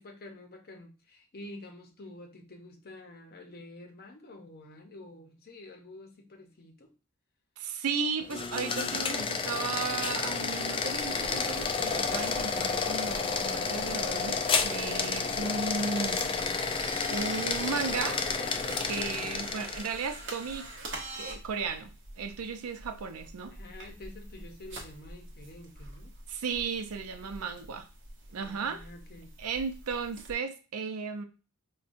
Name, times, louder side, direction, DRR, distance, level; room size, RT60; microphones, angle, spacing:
voice 1, 0.0-6.9 19.1-19.6 23.5-26.1 28.3-29.3, left 2 dB, 45° left, 0.7 m, -48 dB
voice 2, 7.6-16.7 17.1-18.2 18.8-20.7 21.1-21.9 22.2-23.5 26.3-27.9 28.3-28.8 29.4-31.2, right 5 dB, 80° right, 0.5 m, -35 dB
sound 1, 8.2-20.0, left 5 dB, 25° left, 0.3 m, -31 dB
sound 2, 11.0-30.3, right 2 dB, 55° right, 0.9 m, -45 dB
5.1 x 2.2 x 2.5 m
head